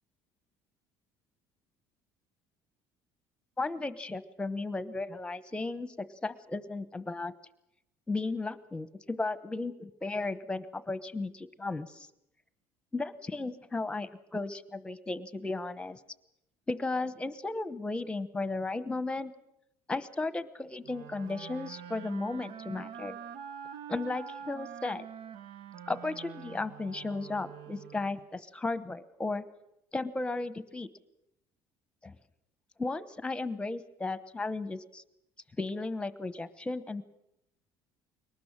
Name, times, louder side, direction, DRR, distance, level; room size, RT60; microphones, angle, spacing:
voice 1, 3.6-7.3 8.1-12.1 12.9-16.0 16.7-19.3 19.9-23.2 23.9-25.0 25.9-29.4 29.9-30.9 32.0-32.2 32.8-35.0 35.6-37.0, left 3 dB, 10° left, 14 dB, 1.1 m, -35 dB
sound 1, 20.8-28.3, right 8 dB, 70° right, 0.9 m, -45 dB
22.5 x 19.5 x 7.5 m, 0.83 s
cardioid pair, 125°, 9 cm